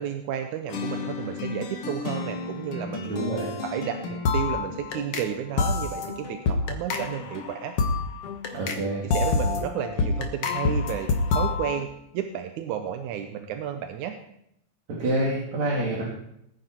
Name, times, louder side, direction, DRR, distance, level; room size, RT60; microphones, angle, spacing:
voice 1, 0.0-3.1 3.6-7.7 9.0-11.9 12.1-14.2, right 9 dB, 85° right, 6 dB, 2.3 m, -32 dB
sound 1, 0.7-5.3 5.6-8.8 9.1-11.8, left 4 dB, 55° left, 2.2 m, -28 dB
voice 2, 3.0-3.5 8.5-9.1 14.9-16.0, right 1 dB, 65° right, -4 dB, 3.7 m, -27 dB
19.0 x 9.8 x 4.4 m, 0.76 s
omnidirectional pair, 3.3 m